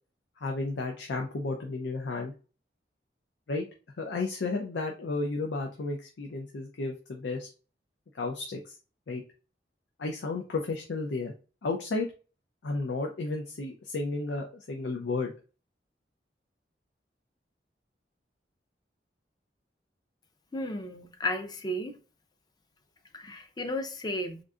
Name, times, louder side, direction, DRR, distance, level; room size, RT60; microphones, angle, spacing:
voice 1, 0.4-2.3 3.5-3.6 4.0-7.5 8.1-8.7 9.1-9.2 10.0-11.3 11.6-12.1 12.6-15.3, left 3 dB, 90° left, 0.5 m, -33 dB
voice 2, 20.5-22.0 23.1-24.4, left 1 dB, 25° left, 0.4 m, -33 dB
3.6 x 2.6 x 2.3 m
head